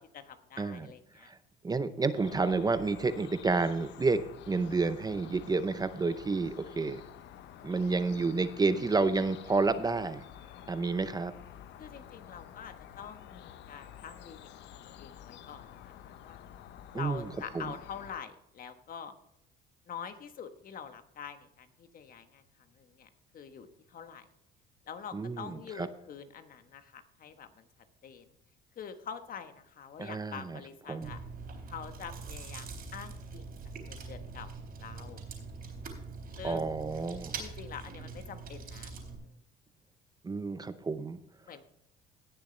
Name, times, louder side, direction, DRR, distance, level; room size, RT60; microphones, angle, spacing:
voice 1, 0.0-1.3 11.8-14.5 15.0-16.4 16.9-19.1 19.9-24.3 24.9-27.7 28.0-28.3 28.8-31.2 31.7-33.5 33.9-34.5 34.8-35.2 36.4-36.7 37.4-39.4 41.5-41.7, left 7 dB, 45° left, 8 dB, 1.2 m, -45 dB
voice 2, 0.6-0.9 1.1-1.4 1.6-7.0 7.6-10.2 10.7-11.3 16.9-17.3 17.5-17.7 25.1-25.9 30.0-30.6 30.9-31.1 36.4-37.4 40.2-41.2, right 3 dB, 20° right, 12 dB, 0.6 m, -30 dB
sound 1, 2.1-18.2, left 10 dB, 65° left, 0.8 m, -50 dB
Chewing mastication, 31.0-39.2, right 4 dB, 50° right, 3.8 m, -43 dB
18.0 x 6.8 x 3.3 m, 0.77 s
cardioid pair, 100°, 20 cm